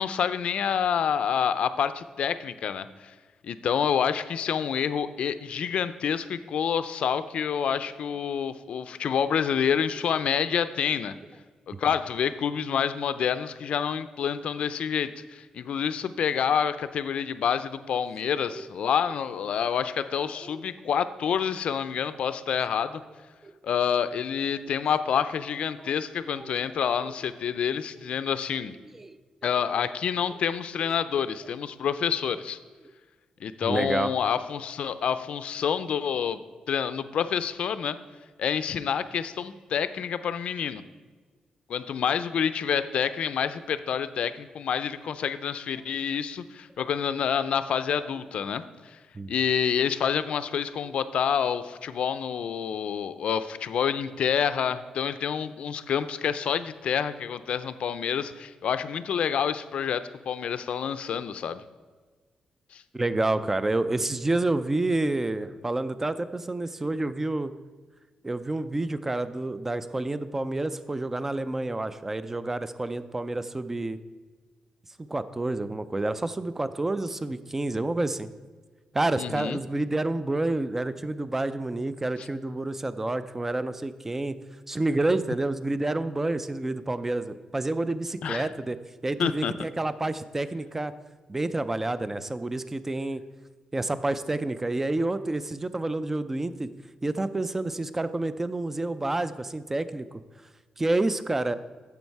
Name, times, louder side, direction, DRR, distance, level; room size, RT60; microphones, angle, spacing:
voice 1, 0.0-3.1 3.4-11.1 11.7-23.0 23.6-28.8 29.4-32.6 33.4-36.4 36.7-38.0 38.4-40.8 41.7-49.0 49.3-61.6 62.7-62.8 79.2-79.6 82.2-82.3 88.2-88.5 89.2-89.5, left 8 dB, 70° left, 13 dB, 0.5 m, -28 dB
voice 2, 20.4-20.7 23.4-23.5 25.7-25.9 26.4-26.5 27.0-27.1 28.9-29.2 33.6-34.1 49.1-49.3 62.9-67.5 68.2-74.0 75.0-78.3 78.9-84.4 84.7-88.8 89.0-90.9 91.3-93.2 93.7-96.7 97.0-100.2 100.8-101.5, right 2 dB, 15° right, 13 dB, 0.4 m, -29 dB
9.5 x 7.2 x 4.6 m, 1.4 s
cardioid pair, 115°, 2 cm